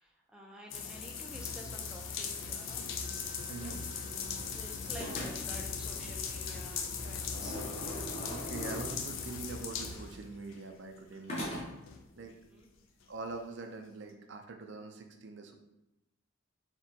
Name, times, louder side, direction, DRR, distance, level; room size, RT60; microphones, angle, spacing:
voice 1, 0.0-2.9 3.6-3.8 4.3-7.7 12.2-12.7, equal, 5° right, -2 dB, 0.5 m, -51 dB
sound 1, 0.7-10.6 11.1-11.2 11.9-12.0, left 6 dB, 65° left, 0.4 m, -39 dB
sound 2, 3.0-4.5 5.0-5.7 7.1-9.2 11.3-11.9, equal, 30° left, 0.9 m, -42 dB
voice 2, 3.5-3.8 8.3-11.7 12.2-12.4 13.1-15.5, right 3 dB, 55° right, 5 dB, 0.4 m, -44 dB
sound 3, 4.1-10.2, equal, 50° left, 1.1 m, -51 dB
4.3 x 3.0 x 2.7 m, 0.91 s
head